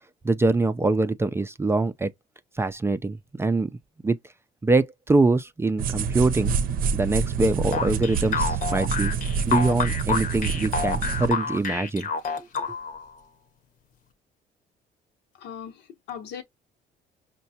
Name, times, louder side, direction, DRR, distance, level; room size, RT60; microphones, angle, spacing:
voice 1, 0.2-2.1 2.6-3.7 4.0-4.2 4.6-6.5 6.9-9.1 9.5-12.1 12.4-12.5, right 3 dB, 15° right, 0.4 m, -24 dB
sound 1, 5.8-11.3, right 6 dB, 55° right, 0.6 m, -27 dB
sound 2, 7.7-13.0, left 5 dB, 50° left, 0.9 m, -28 dB
voice 2, 15.4-16.4, left 8 dB, 80° left, 0.9 m, -38 dB
5.5 x 2.2 x 2.7 m
cardioid pair, 110°, 17 cm